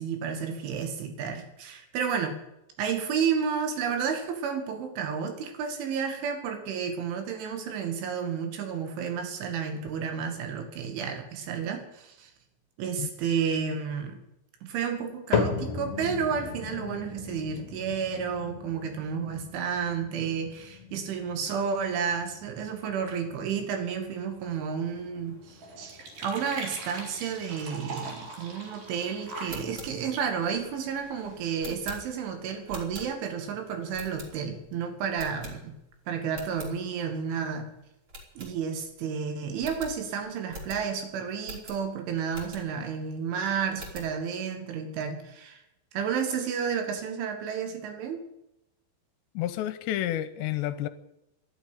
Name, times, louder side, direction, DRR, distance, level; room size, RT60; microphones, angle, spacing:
voice 1, 0.0-2.4 2.8-12.3 12.8-14.2 14.6-35.7 36.1-37.7 38.4-45.6 45.9-48.2, right 7 dB, 90° right, 4.6 m, -31 dB
sound 1, 15.3-31.6 32.0-32.5 33.1-33.2 34.0-34.1, left 6 dB, 50° left, 2.5 m, -38 dB
sound 2, 24.4-31.6, right 3 dB, 55° right, 5.0 m, -43 dB
sound 3, 29.4-33.5 33.9-34.7 35.1-35.9 36.2-36.7 37.2-37.3 37.5-37.7 38.1-39.0 39.2-39.3 39.6-42.9 43.3-44.2, equal, 30° right, 3.9 m, -44 dB
voice 2, 49.3-50.9, left 13 dB, 80° left, 2.9 m, -30 dB
12.5 x 11.5 x 9.9 m
omnidirectional pair, 5.3 m